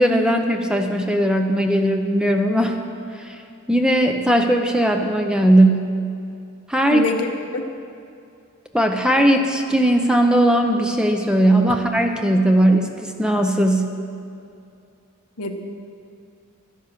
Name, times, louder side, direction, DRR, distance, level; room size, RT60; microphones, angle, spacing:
voice 1, 0.0-2.8 3.2-3.4 3.7-5.9 6.7-7.1 8.7-13.9, right 1 dB, 5° right, 4 dB, 0.6 m, -18 dB
voice 2, 6.9-7.3 7.5-7.7 15.4-15.6, left 4 dB, 85° left, 5 dB, 1.2 m, -24 dB
12.0 x 10.5 x 6.7 m, 2.5 s
head